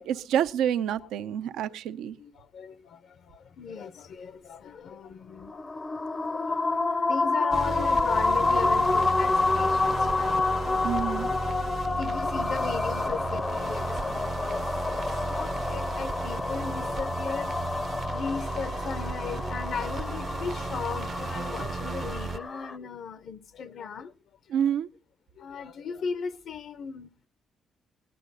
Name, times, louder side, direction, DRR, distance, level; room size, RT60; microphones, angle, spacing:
voice 1, 0.0-2.2 10.8-11.3 24.5-24.9, right 9 dB, 85° right, 0.6 m, -28 dB
voice 2, 2.2-5.6 6.3-11.5 12.0-17.5 18.1-24.1 24.5-24.7 25.4-27.1, left 6 dB, 65° left, 0.7 m, -37 dB
sound 1, 5.4-22.8, left 3 dB, 25° left, 0.5 m, -28 dB
sound 2, 7.5-22.4, right 5 dB, 50° right, 0.7 m, -35 dB
18.0 x 10.0 x 4.0 m
cardioid pair, 90°, 0 cm